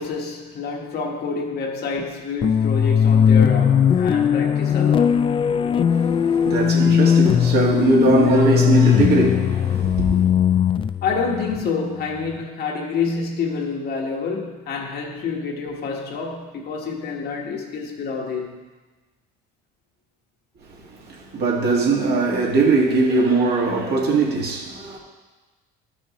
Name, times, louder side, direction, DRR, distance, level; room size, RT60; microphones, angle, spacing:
voice 1, 0.0-5.3 11.0-18.6, left 4 dB, 55° left, 1.5 m, -28 dB
sound 1, 2.4-12.3, left 8 dB, 25° left, 0.3 m, -19 dB
voice 2, 5.9-10.2 21.1-25.0, right 3 dB, 55° right, 2.0 m, -20 dB
12.0 x 6.2 x 3.1 m
cardioid pair, 100°, 19 cm